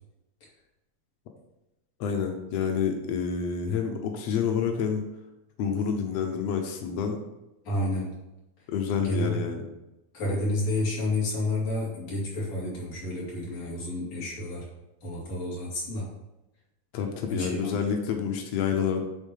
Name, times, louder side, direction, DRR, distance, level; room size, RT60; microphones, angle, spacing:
voice 1, 2.0-5.0 5.6-7.2 8.7-9.7 16.9-19.0, left 7 dB, 90° left, 4 dB, 1.4 m, -28 dB
voice 2, 7.7-8.1 9.0-9.4 10.1-14.7 15.0-16.1 17.3-17.7, left 1 dB, 50° left, -6 dB, 3.7 m, -30 dB
8.7 x 3.7 x 5.6 m, 0.95 s
omnidirectional pair, 3.9 m